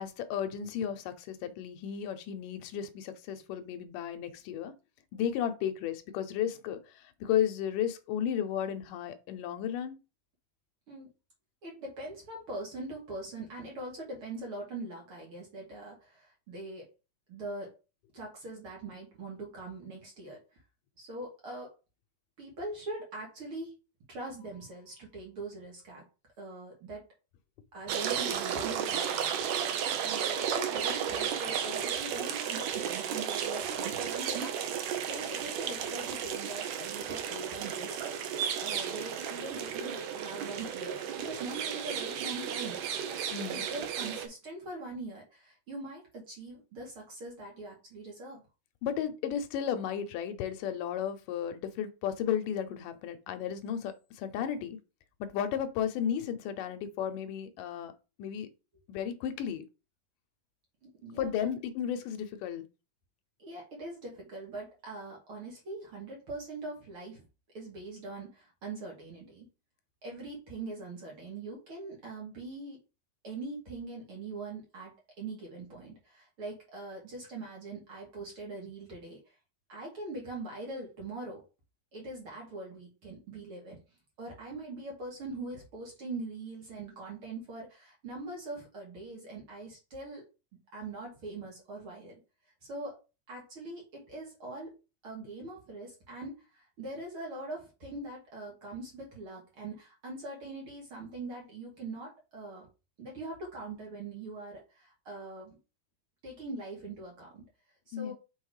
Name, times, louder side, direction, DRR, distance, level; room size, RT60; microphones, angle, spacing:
voice 1, 0.0-4.7 5.1-10.0 43.3-43.6 48.8-54.8 55.2-57.9 58.2-58.5 58.9-59.6 61.2-62.7 107.9-108.1, left 9 dB, 80° left, 2.4 m, -34 dB
voice 2, 11.6-16.9 17.3-17.7 18.1-20.4 21.0-21.7 22.4-23.7 24.1-26.0 26.4-27.1 27.7-29.3 30.0-42.8 43.5-48.4 61.0-61.5 63.4-67.2 67.5-69.5 70.0-72.8 73.2-79.3 79.7-81.4 81.9-83.8 84.2-90.2 90.7-92.2 92.6-93.0 93.3-94.7 95.0-102.7 103.0-105.6 106.2-107.4 107.9-108.1, right 2 dB, 45° right, 2.7 m, -42 dB
sound 1, 27.9-44.3, right 8 dB, 70° right, 1.8 m, -33 dB
6.1 x 3.7 x 4.9 m
omnidirectional pair, 3.8 m